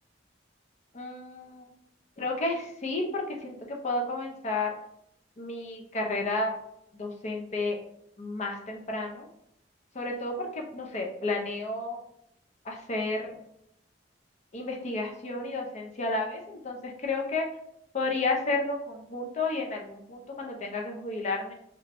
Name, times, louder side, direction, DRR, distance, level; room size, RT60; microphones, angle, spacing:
voice 1, 0.9-1.7 2.2-4.8 5.4-6.6 6.9-7.8 8.2-9.3 9.9-12.0 12.6-13.3 14.5-17.5 17.9-21.5, left 2 dB, 40° left, 1 dB, 0.5 m, -32 dB
2.5 x 2.2 x 3.3 m, 0.76 s
head